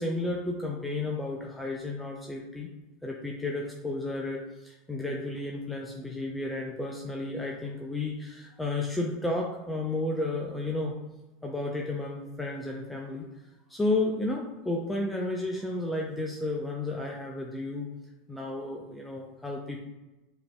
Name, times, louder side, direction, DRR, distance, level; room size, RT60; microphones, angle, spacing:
voice 1, 0.0-2.7 3.0-10.9 11.4-13.3 13.7-17.9 18.3-19.8, left 2 dB, 10° left, -1 dB, 0.4 m, -32 dB
4.9 x 2.7 x 2.2 m, 1.1 s
hypercardioid pair, 85°, 0 cm